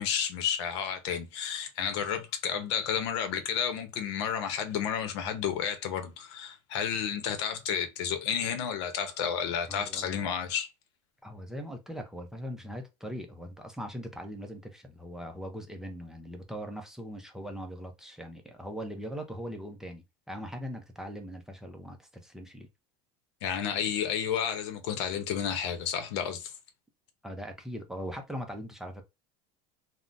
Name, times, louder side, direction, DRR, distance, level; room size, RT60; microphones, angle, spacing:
voice 1, 0.0-10.7 23.4-26.5, left 8 dB, 85° left, 0.7 m, -31 dB
voice 2, 9.7-10.3 11.2-22.7 27.2-29.0, equal, 5° right, 0.5 m, -40 dB
3.6 x 2.1 x 2.5 m
supercardioid pair, 140°, 14 cm